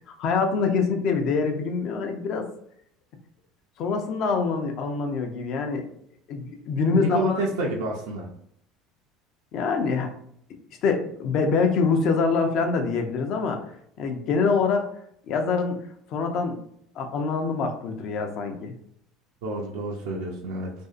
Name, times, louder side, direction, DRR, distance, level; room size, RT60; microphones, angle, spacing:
voice 1, 0.1-2.5 3.8-5.8 6.3-7.4 9.5-10.1 10.8-13.7 14.0-14.9 15.3-15.8 16.1-16.6 17.0-18.7, left 4 dB, 55° left, 5 dB, 0.5 m, -25 dB
voice 2, 6.9-8.3 19.4-20.7, right 2 dB, 75° right, 0 dB, 0.4 m, -28 dB
2.6 x 2.4 x 2.4 m, 0.69 s
hypercardioid pair, 70°, 0 cm